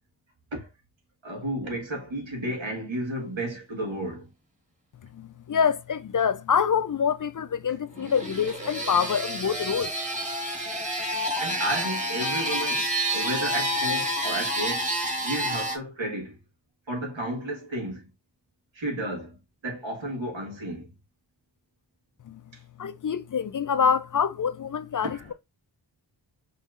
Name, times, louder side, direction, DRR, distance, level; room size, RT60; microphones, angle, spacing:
voice 1, 1.2-4.3 11.4-14.9 15.2-16.4 16.9-18.0 18.7-19.4 19.6-20.9 22.5-22.6 25.0-25.3, right 1 dB, 90° right, 1.6 m, -32 dB
voice 2, 5.1-9.9 22.3-22.4 22.8-25.3, left 7 dB, 45° left, 0.4 m, -26 dB
sound 1, 7.9-15.8, equal, 15° right, 1.4 m, -29 dB
5.4 x 3.1 x 2.4 m
wide cardioid pair, 70°, 45 cm